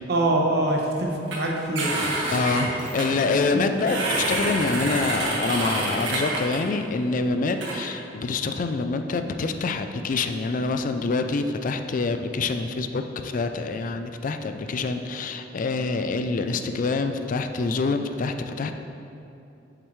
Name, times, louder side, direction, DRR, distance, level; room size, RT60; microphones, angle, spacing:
voice 1, 0.1-1.9 3.4-3.8, right 1 dB, 60° right, 0 dB, 1.0 m, -24 dB
sound 1, 1.3-1.4 1.7-3.0 3.8-6.6 7.5-7.7, right 2 dB, 90° right, 1.7 m, -27 dB
voice 2, 2.3-18.7, left 3 dB, 45° left, 8 dB, 0.4 m, -26 dB
7.9 x 7.4 x 3.1 m, 2.8 s
head